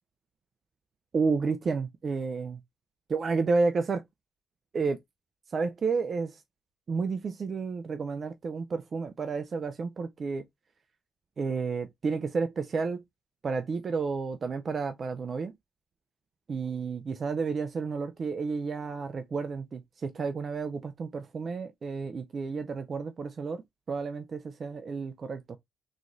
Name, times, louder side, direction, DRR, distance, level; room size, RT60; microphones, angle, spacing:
voice 1, 1.1-2.6 3.1-4.0 4.7-5.0 5.5-6.4 6.9-10.4 11.4-13.0 13.4-15.5 16.5-23.6 23.9-25.6, right 4 dB, 45° right, 0.5 m, -31 dB
3.9 x 3.0 x 2.5 m
cardioid pair, 90°, 0 cm